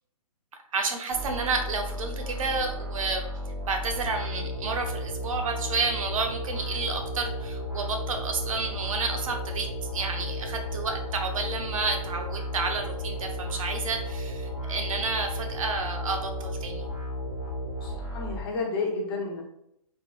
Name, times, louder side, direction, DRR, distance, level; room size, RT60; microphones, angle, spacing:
voice 1, 0.7-3.2 3.7-16.9, right 4 dB, 60° right, 4 dB, 0.7 m, -30 dB
sound 1, 1.1-18.4, left 1 dB, 10° right, 1.1 m, -34 dB
voice 2, 17.8-19.4, left 3 dB, 40° left, -2 dB, 1.0 m, -31 dB
3.7 x 3.1 x 2.4 m, 0.75 s
hypercardioid pair, 170°, 19 cm